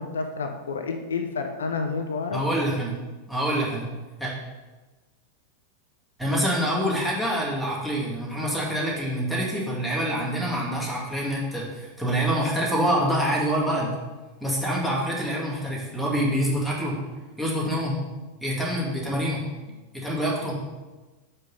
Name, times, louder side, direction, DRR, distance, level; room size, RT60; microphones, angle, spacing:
voice 1, 0.0-2.4, left 4 dB, 70° left, 5 dB, 0.6 m, -29 dB
voice 2, 2.3-2.9 3.3-3.8 4.2-4.3 6.2-13.9 14.4-16.9 17.4-18.0 18.4-19.4 19.9-20.6, equal, ahead, -6 dB, 2.0 m, -26 dB
5.5 x 5.2 x 5.4 m, 1.2 s
figure-of-eight pair, 90°, 0 cm